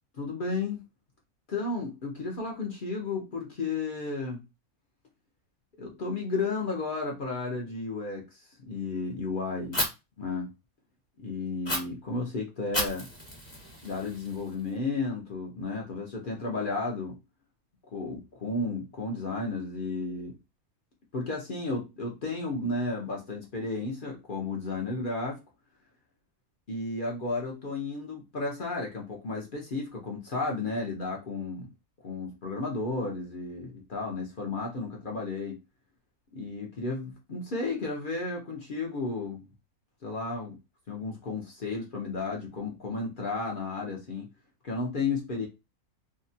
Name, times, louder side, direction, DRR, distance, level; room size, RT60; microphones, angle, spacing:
voice 1, 0.2-0.8 1.5-4.4 5.8-9.8 10.2-10.5 11.2-13.1 13.8-17.2 17.9-20.3 21.1-25.4 26.7-31.7 32.0-35.6 36.3-39.5 40.0-40.6 40.9-44.3 44.6-45.5, left 3 dB, 50° left, 0.7 m, -33 dB
Fire, 9.7-9.9 11.6-11.8 12.7-14.7, equal, 20° left, 1.1 m, -32 dB
2.8 x 2.2 x 2.6 m
omnidirectional pair, 1.5 m